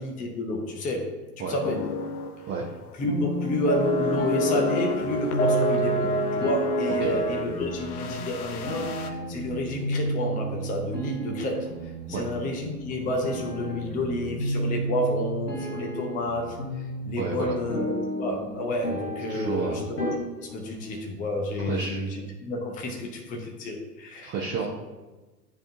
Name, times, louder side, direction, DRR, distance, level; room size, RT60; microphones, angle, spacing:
voice 1, 0.0-1.8 3.0-11.7 12.1-20.1 20.4-24.3, left 1 dB, 15° left, 1 dB, 0.7 m, -30 dB
sound 1, 1.6-2.4 2.7-2.9 3.7-9.1, left 1 dB, 65° left, 0.7 m, -27 dB
sound 2, 3.1-21.1, right 2 dB, 85° left, 1.8 m, -33 dB
voice 2, 17.2-17.5 19.3-19.8 21.6-22.0 24.2-24.7, right 5 dB, 25° right, -3 dB, 0.8 m, -30 dB
9.9 x 3.7 x 2.6 m, 1.2 s
hypercardioid pair, 100°, 48 cm